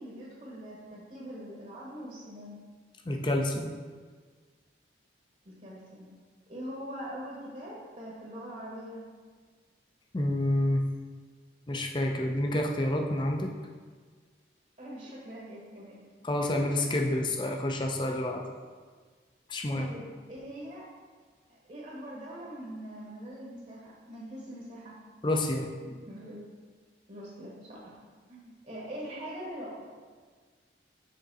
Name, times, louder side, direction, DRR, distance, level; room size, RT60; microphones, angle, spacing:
voice 1, 0.0-2.6 5.4-6.1 6.5-9.0 14.8-16.0 16.5-16.9 18.1-18.3 19.7-20.8 21.5-24.9 25.8-26.5 27.1-27.9 28.3-29.8, equal, 40° right, -4 dB, 1.1 m, -43 dB
voice 2, 3.1-3.7 10.1-10.8 11.7-13.5 16.2-18.4 19.5-19.9 25.2-25.7, left 1 dB, 25° left, 2 dB, 0.5 m, -28 dB
6.5 x 3.7 x 4.1 m, 1.5 s
head